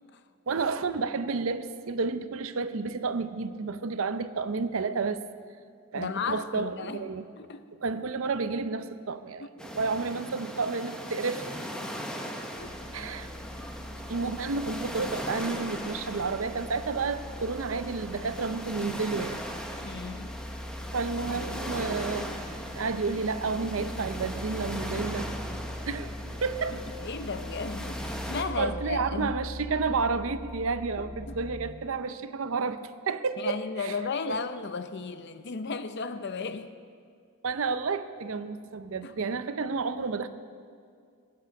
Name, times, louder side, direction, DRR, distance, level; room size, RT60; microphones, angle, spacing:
voice 1, 0.5-5.2 5.9-7.2 7.8-11.5 12.9-13.3 14.1-19.4 20.9-22.5 22.8-25.3 25.9-26.1 26.4-26.8 28.6-32.8 33.1-34.0 34.3-34.4 37.4-40.3, right 4 dB, 65° right, 12 dB, 0.6 m, -31 dB
voice 2, 5.9-7.1 7.4-7.6 9.4-9.5 12.6-12.7 19.8-20.4 26.7-29.4 31.0-31.4 33.4-36.7 39.0-39.2, left 4 dB, 50° left, 10 dB, 0.6 m, -35 dB
sound 1, 9.6-28.4, equal, 5° left, 0.9 m, -39 dB
sound 2, 12.6-31.7, left 1 dB, 20° right, 1.2 m, -42 dB
16.0 x 9.0 x 6.5 m, 2.3 s
head